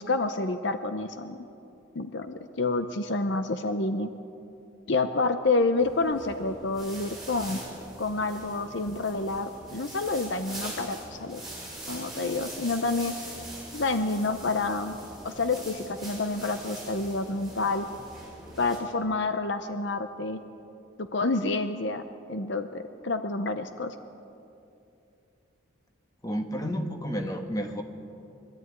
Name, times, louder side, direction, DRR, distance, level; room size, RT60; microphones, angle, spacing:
voice 1, 0.0-1.4 1.9-4.1 4.9-7.6 8.0-11.4 11.9-13.2 13.7-15.0 15.2-17.8 18.6-20.4 21.0-23.9, left 3 dB, 55° left, 9 dB, 0.7 m, -28 dB
sound 1, 5.8-18.8, right 1 dB, ahead, 5.8 m, -42 dB
voice 2, 26.2-27.8, equal, 15° left, 4 dB, 1.4 m, -31 dB
22.5 x 13.0 x 9.6 m, 2.7 s
head